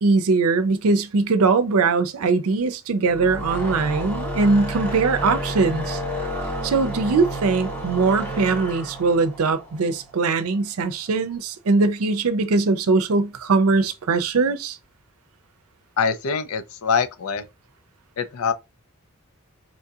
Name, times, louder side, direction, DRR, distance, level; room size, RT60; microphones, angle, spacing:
voice 1, 0.0-6.0 6.6-14.8, right 4 dB, 90° right, 0.5 m, -21 dB
sound 1, 3.0-10.4, right 1 dB, 10° left, 1.1 m, -31 dB
voice 2, 16.0-17.5 18.2-18.5, left 5 dB, 85° left, 0.5 m, -24 dB
4.2 x 2.7 x 2.3 m
head